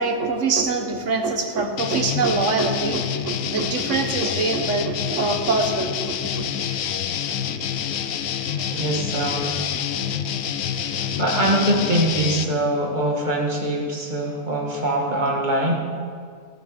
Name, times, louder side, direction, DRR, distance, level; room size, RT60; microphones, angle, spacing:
voice 1, 0.0-6.5, right 3 dB, 65° right, 5 dB, 1.4 m, -24 dB
sound 1, 1.8-12.5, left 8 dB, 75° left, 1.1 m, -27 dB
voice 2, 8.7-9.7 10.8-10.9 11.2-15.7, right 1 dB, 35° right, -1 dB, 2.0 m, -23 dB
16.0 x 9.2 x 5.2 m, 2.1 s
omnidirectional pair, 1.4 m